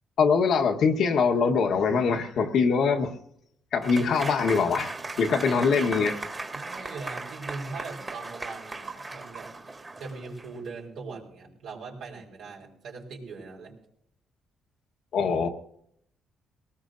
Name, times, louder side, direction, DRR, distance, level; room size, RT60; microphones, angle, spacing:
voice 1, 0.2-3.1 3.7-6.2 15.1-15.5, left 5 dB, 70° left, 1.3 m, -23 dB
Applause / Crowd, 3.8-10.6, right 3 dB, 25° right, 1.8 m, -37 dB
sound 1, 5.8-6.0 6.7-6.9 8.9-9.1 9.3-9.7, right 6 dB, 60° right, 2.5 m, -43 dB
voice 2, 6.5-13.7, right 4 dB, 85° right, 4.8 m, -41 dB
22.0 x 18.5 x 2.6 m
cardioid pair, 90°, 0 cm